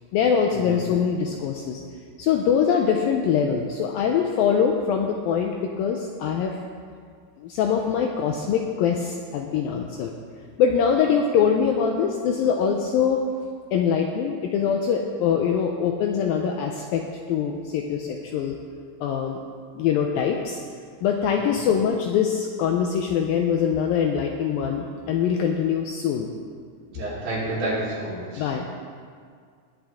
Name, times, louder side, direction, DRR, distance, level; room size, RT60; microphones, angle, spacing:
voice 1, 0.1-1.8 2.2-5.5 5.8-6.6 7.4-10.1 10.6-13.2 13.7-18.6 19.0-19.4 19.8-20.6 21.0-26.3 28.4-28.7, left 7 dB, 85° left, 2 dB, 2.1 m, -23 dB
voice 2, 26.9-28.5, right 1 dB, 70° right, -9 dB, 5.9 m, -30 dB
19.5 x 9.0 x 3.6 m, 2.1 s
omnidirectional pair, 4.8 m